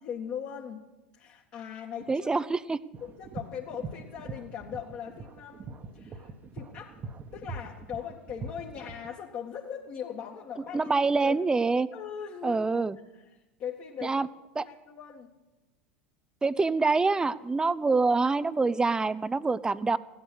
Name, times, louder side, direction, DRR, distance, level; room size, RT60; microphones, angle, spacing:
voice 1, 0.0-0.9 1.2-2.3 3.0-7.0 7.3-11.3 11.9-12.6 13.1-13.2 13.6-14.2 14.6-15.3, left 8 dB, 45° left, -2 dB, 2.0 m, -40 dB
voice 2, 2.1-2.8 10.7-11.9 12.4-13.0 14.0-14.3 14.6-14.7 16.4-20.0, right 3 dB, 10° right, 17 dB, 0.6 m, -25 dB
sound 1, 2.9-9.1, right 4 dB, 30° right, 1.3 m, -42 dB
16.0 x 11.5 x 6.4 m, 1.1 s
hypercardioid pair, 90°, 6 cm